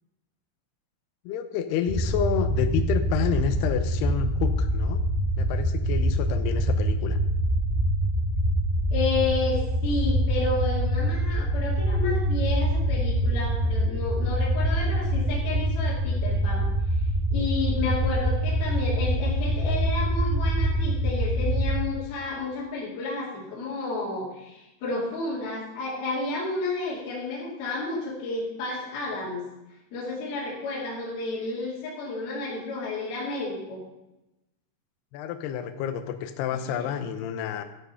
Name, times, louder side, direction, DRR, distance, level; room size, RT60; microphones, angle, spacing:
voice 1, 1.3-5.0 5.4-7.2 35.1-37.6, left 8 dB, 80° left, 8 dB, 2.3 m, -29 dB
The Paranormal Activity Sound, 1.9-21.7, right 1 dB, 50° right, 0.3 m, -25 dB
voice 2, 8.9-17.0 17.3-29.4 29.9-33.8 36.7-36.9, left 3 dB, 55° left, -6 dB, 4.4 m, -31 dB
13.0 x 8.3 x 5.7 m, 0.94 s
omnidirectional pair, 5.7 m